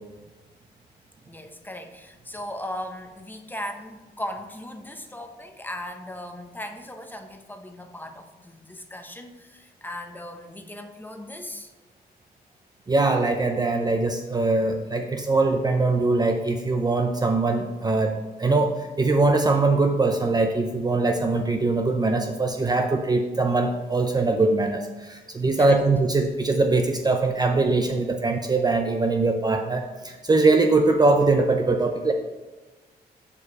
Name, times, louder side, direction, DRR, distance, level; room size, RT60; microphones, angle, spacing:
voice 1, 1.3-11.7 25.6-25.8, left 1 dB, 10° left, 5 dB, 0.8 m, -37 dB
voice 2, 12.9-32.1, right 3 dB, 25° right, 4 dB, 0.5 m, -22 dB
6.7 x 5.1 x 5.0 m, 1.2 s
cardioid pair, 100°, 17 cm